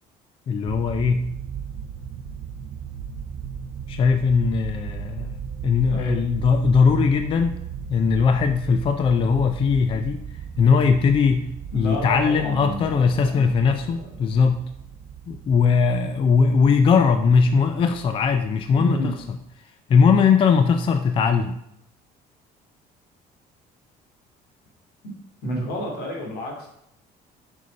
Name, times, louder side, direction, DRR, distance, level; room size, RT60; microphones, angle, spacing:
voice 1, 0.5-1.3 3.9-7.6 7.9-10.2 10.6-11.5 11.7-14.6 15.3-19.2 19.9-21.5, left 5 dB, 30° left, 8 dB, 0.4 m, -19 dB
sound 1, 0.7-19.4, right 7 dB, 55° right, 0.6 m, -36 dB
voice 2, 5.9-6.2 11.7-13.6 14.2-14.3 18.8-19.1 25.4-26.7, equal, 75° left, 0 dB, 2.5 m, -30 dB
6.6 x 5.4 x 5.2 m, 0.76 s
cardioid pair, 165°, 17 cm